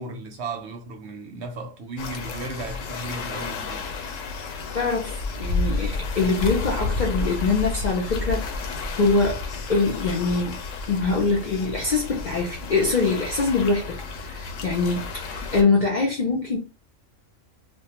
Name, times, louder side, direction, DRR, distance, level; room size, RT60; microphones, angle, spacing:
voice 1, 0.0-4.0, right 3 dB, 65° right, 0.8 m, -35 dB
sound 1, 2.0-15.6, left 3 dB, 75° left, 0.9 m, -31 dB
voice 2, 4.7-9.4 9.7-10.6 10.9-16.6, left 3 dB, 55° left, 0.5 m, -24 dB
2.2 x 2.2 x 2.8 m
omnidirectional pair, 1.3 m